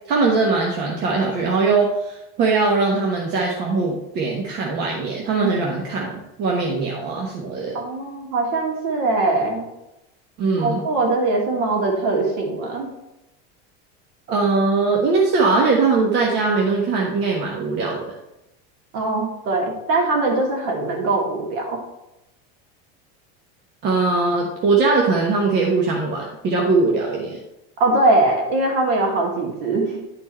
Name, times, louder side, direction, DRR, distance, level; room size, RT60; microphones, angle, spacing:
voice 1, 0.1-7.8 10.4-10.8 14.3-18.1 23.8-27.4, right 3 dB, 35° right, -1 dB, 1.1 m, -21 dB
voice 2, 7.7-9.7 10.6-12.9 18.9-21.8 27.8-30.0, right 2 dB, 50° right, 0 dB, 2.3 m, -21 dB
10.5 x 4.5 x 4.3 m, 0.91 s
cardioid pair, 170°, 31 cm